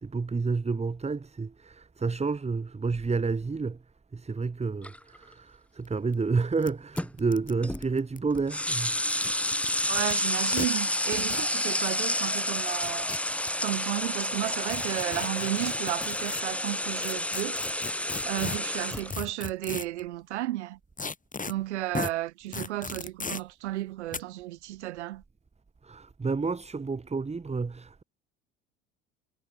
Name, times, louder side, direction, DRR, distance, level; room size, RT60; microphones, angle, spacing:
voice 1, 0.0-3.8 4.1-9.0 25.8-28.0, right 4 dB, 20° right, 2.3 m, -30 dB
sound 1, 4.8-5.2 7.0-7.1 7.6-7.9 8.3-19.1, left 1 dB, 5° left, 1.4 m, -30 dB
sound 2, 5.9-6.0 6.1-6.2 6.6-6.7 7.0-8.4 9.0-10.1 10.5-10.7 11.1-11.5 12.6-13.5 14.7-16.4 17.0-20.0 21.0-21.5 21.9-22.1 22.5-23.4 24.1-24.2, left 4 dB, 25° left, 7.8 m, -36 dB
voice 2, 9.9-13.1 13.6-17.6 18.2-20.8 21.5-25.2, right 15 dB, 80° right, 2.6 m, -33 dB
hypercardioid pair, 70°, 34 cm